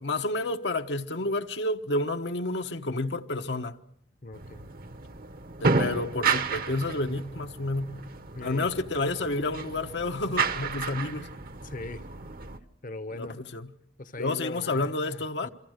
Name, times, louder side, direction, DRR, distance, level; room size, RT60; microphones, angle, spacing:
voice 1, 0.0-3.8 5.6-7.9 8.4-11.3 13.2-13.3 13.5-13.7 14.2-15.5, left 2 dB, 75° left, 1.2 m, -30 dB
voice 2, 4.2-4.7 8.4-8.7 11.6-12.1 12.8-13.4 14.0-15.5, left 2 dB, 50° left, 1.0 m, -40 dB
sound 1, 4.3-12.6, right 4 dB, 55° right, 1.2 m, -32 dB
28.5 x 24.5 x 6.5 m
head